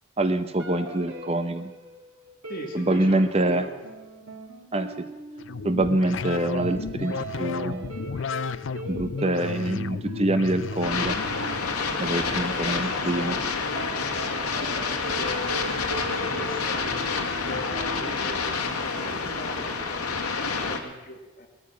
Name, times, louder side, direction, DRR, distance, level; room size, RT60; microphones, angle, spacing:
voice 1, 0.2-1.7 2.7-3.7 4.7-5.1 5.6-7.1 7.4-7.9 8.9-11.2 12.0-13.4, right 1 dB, 30° right, 10 dB, 0.7 m, -25 dB
sound 1, 0.6-6.2 6.6-6.8 7.0-19.9, right 2 dB, 85° right, 3.8 m, -41 dB
voice 2, 2.5-3.7 12.5-13.5 14.3-21.5, left 1 dB, 40° left, 2 dB, 2.1 m, -40 dB
sound 2, 5.4-11.7, left 5 dB, 60° left, 0.5 m, -33 dB
sound 3, 10.8-20.8, left 4 dB, 90° left, 1.9 m, -28 dB
18.0 x 13.5 x 5.7 m, 1.1 s
head